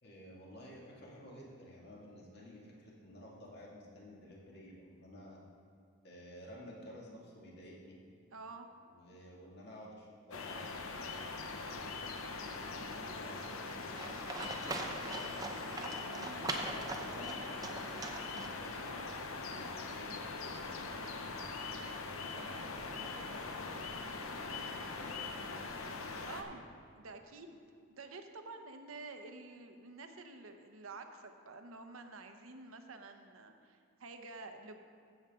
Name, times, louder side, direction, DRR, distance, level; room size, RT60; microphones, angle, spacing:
voice 1, 0.0-5.4 6.0-8.0 8.9-11.2 11.9-15.7 16.6-21.7 22.3-25.7, left 1 dB, 50° left, -4 dB, 2.1 m, -53 dB
voice 2, 8.3-8.7 16.2-16.9 22.3-22.6 26.2-26.7 27.0-27.6 27.9-34.8, right 3 dB, 80° right, 6 dB, 0.8 m, -50 dB
sound 1, 10.3-26.4, left 3 dB, 80° left, 0.8 m, -42 dB
Livestock farm animals working animals, 13.9-18.9, right 2 dB, 15° right, 0.7 m, -42 dB
15.5 x 7.2 x 3.7 m, 2.3 s
head